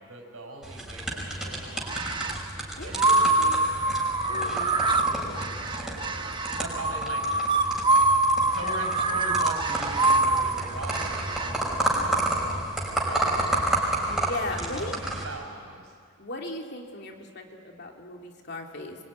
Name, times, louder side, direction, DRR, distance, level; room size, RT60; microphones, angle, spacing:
voice 1, 0.0-2.4 2.8-3.8 4.3-12.7 13.0-13.7 14.1-14.2 14.6-16.0, right 2 dB, 85° right, 3 dB, 5.4 m, -41 dB
sound 1, 0.6-15.2, right 1 dB, 5° right, 5.6 m, -31 dB
sound 2, 1.8-2.4 2.9-11.5, right 2 dB, 20° right, 1.2 m, -25 dB
voice 2, 2.8-3.7 4.3-4.8 14.3-14.9 16.2-19.0, left 2 dB, 55° left, 2 dB, 2.9 m, -37 dB
25.5 x 23.5 x 9.8 m, 2.1 s
head